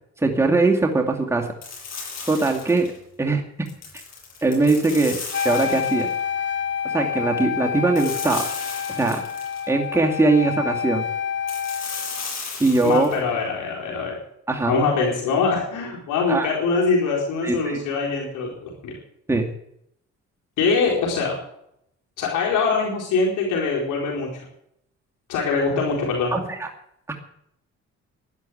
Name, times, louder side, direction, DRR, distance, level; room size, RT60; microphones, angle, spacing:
voice 1, 0.2-1.5 2.3-2.9 3.2-3.4 4.4-5.2 5.4-6.1 6.8-8.4 8.9-9.2 9.7-11.0 12.6-13.1 14.5-14.7 16.3-16.5 17.4-17.8 19.3-19.5 26.3-26.7 27.1-27.2, right 3 dB, 10° right, 0 dB, 2.3 m, -21 dB
sound 1, 1.6-3.0 3.7-6.2 7.9-9.7 11.5-13.2, left 5 dB, 60° left, 7.2 m, -35 dB
Wind instrument woodwind instrument, 5.3-12.3, left 8 dB, 40° left, 1.4 m, -28 dB
voice 2, 12.8-14.2 14.7-18.9 20.6-21.4 22.2-24.4 25.3-26.3, left 4 dB, 90° left, -2 dB, 4.5 m, -23 dB
12.0 x 11.0 x 8.7 m, 0.73 s
cardioid pair, 90°, 30 cm